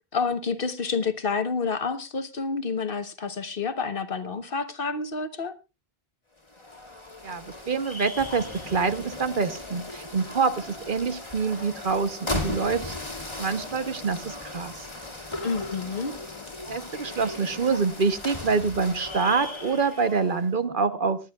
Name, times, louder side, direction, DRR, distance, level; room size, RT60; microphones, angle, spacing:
voice 1, 0.1-5.6 15.4-16.1, left 5 dB, 60° left, 1.2 m, -29 dB
sound 1, 6.4-20.5, left 2 dB, 25° left, 2.1 m, -37 dB
voice 2, 7.2-13.0 13.4-14.9 16.7-21.2, right 5 dB, 55° right, 1.1 m, -26 dB
25.0 x 10.5 x 2.3 m
omnidirectional pair, 1.1 m